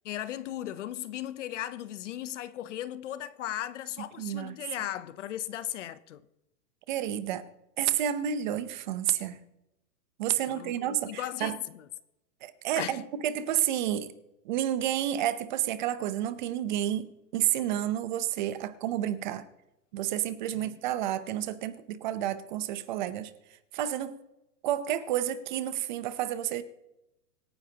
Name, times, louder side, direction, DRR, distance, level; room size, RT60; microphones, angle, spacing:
voice 1, 0.0-6.2 10.5-11.9 12.8-13.0 20.5-20.8, left 12 dB, 45° left, 0.7 m, -37 dB
voice 2, 4.2-4.6 6.9-7.4 7.8-9.4 10.2-11.6 12.4-14.1 14.4-19.5 19.9-23.3 23.7-24.2 24.6-26.6, right 11 dB, 30° right, 0.7 m, -30 dB
25.5 x 10.0 x 2.9 m
hypercardioid pair, 160°, 50 cm